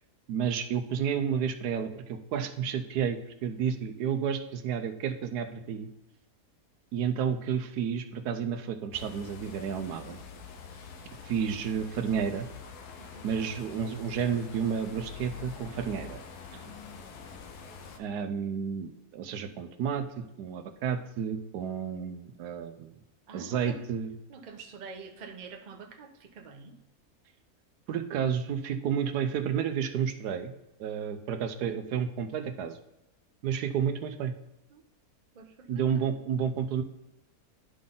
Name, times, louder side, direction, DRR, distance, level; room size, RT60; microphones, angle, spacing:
voice 1, 0.3-5.9 6.9-10.2 11.2-12.5 13.2-16.2 18.0-23.0 23.3-24.1 27.9-30.5 30.8-32.8 33.4-34.3 35.7-36.8, right 7 dB, 85° right, 8 dB, 1.2 m, -31 dB
sound 1, 8.9-18.0, left 6 dB, 80° left, 1.3 m, -45 dB
voice 2, 13.0-13.3 16.5-16.8 20.2-20.3 23.3-23.9 24.3-26.8 29.5-29.7 34.7-34.8 35.3-36.0, right 5 dB, 40° right, 4 dB, 0.7 m, -47 dB
11.0 x 3.9 x 3.7 m, 0.91 s
omnidirectional pair, 1.7 m